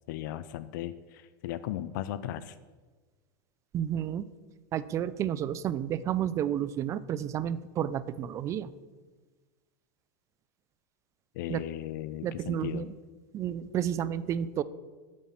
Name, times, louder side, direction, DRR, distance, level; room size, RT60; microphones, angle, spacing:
voice 1, 0.1-2.6 11.3-12.9, left 12 dB, 65° left, 14 dB, 0.5 m, -37 dB
voice 2, 3.7-4.3 4.7-8.7 11.5-11.6 12.2-12.9 13.3-14.6, right 10 dB, 25° right, 17 dB, 0.4 m, -31 dB
8.6 x 7.5 x 5.7 m, 1.4 s
supercardioid pair, 145°, 11 cm